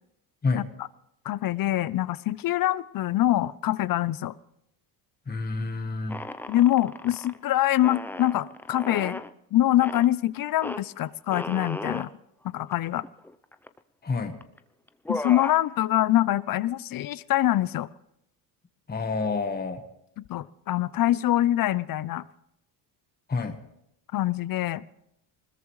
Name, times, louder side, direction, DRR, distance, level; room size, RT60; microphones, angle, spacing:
voice 1, 1.2-4.3 6.5-9.2 9.5-12.1 12.4-13.0 15.1-17.9 20.2-22.3 24.1-24.8, left 14 dB, 45° left, 19 dB, 0.6 m, -24 dB
voice 2, 5.3-6.2 14.0-14.4 18.9-19.8 23.3-23.6, left 4 dB, 20° left, 6 dB, 1.3 m, -28 dB
sound 1, 6.1-7.4 7.8-9.3 9.8-10.1 10.6-10.8 11.3-12.1 12.7-12.8 13.0-13.8 14.4-14.6 14.9-15.6, left 1 dB, 5° left, 0.5 m, -35 dB
20.5 x 20.5 x 3.2 m, 0.79 s
cardioid pair, 95°, 47 cm